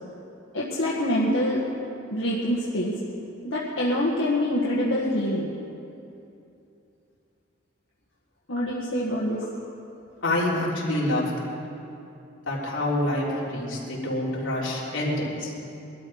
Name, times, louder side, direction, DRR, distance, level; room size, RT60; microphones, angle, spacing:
voice 1, 0.5-1.6 2.1-3.0 3.4-5.5 8.5-9.4, left 1 dB, 90° left, -6 dB, 1.7 m, -25 dB
voice 2, 10.2-11.4 12.5-15.5, left 1 dB, 70° left, -5 dB, 3.6 m, -27 dB
21.5 x 13.0 x 4.8 m, 2.7 s
head